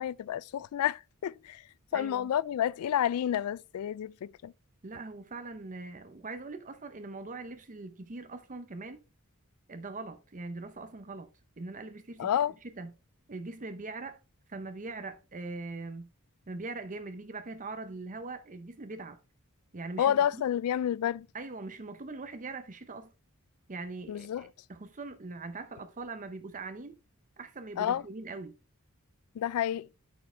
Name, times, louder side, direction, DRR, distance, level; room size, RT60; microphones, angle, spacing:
voice 1, 0.0-1.6 1.9-4.5 12.2-12.5 20.0-21.3 24.1-24.5 27.8-28.0 29.4-29.9, left 10 dB, 80° left, 0.3 m, -30 dB
voice 2, 1.9-2.3 4.8-9.0 9.7-11.3 11.6-12.3 12.6-12.9 13.3-14.2 14.5-16.1 16.5-19.2 19.7-20.4 21.3-23.1 23.7-27.0 27.4-28.6, right 3 dB, 35° right, 0.8 m, -41 dB
9.6 x 6.5 x 3.3 m
head